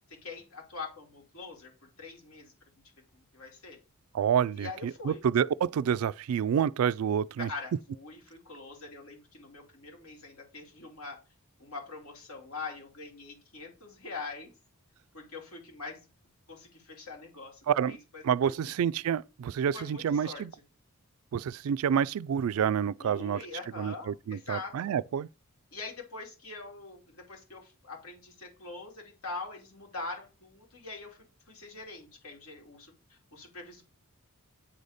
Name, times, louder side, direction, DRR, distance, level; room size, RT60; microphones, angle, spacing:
voice 1, 0.1-1.7 2.0-2.5 3.1-3.8 4.5-5.2 7.4-11.2 11.6-14.5 15.1-16.1 16.5-18.7 19.7-20.4 23.0-24.9 25.7-31.2 31.5-33.8, left 3 dB, 70° left, 2.7 m, -43 dB
voice 2, 4.1-7.5 17.7-18.0 18.2-20.5 21.3-23.4 23.8-25.3, right 8 dB, 65° right, 0.3 m, -28 dB
8.8 x 4.1 x 5.0 m
head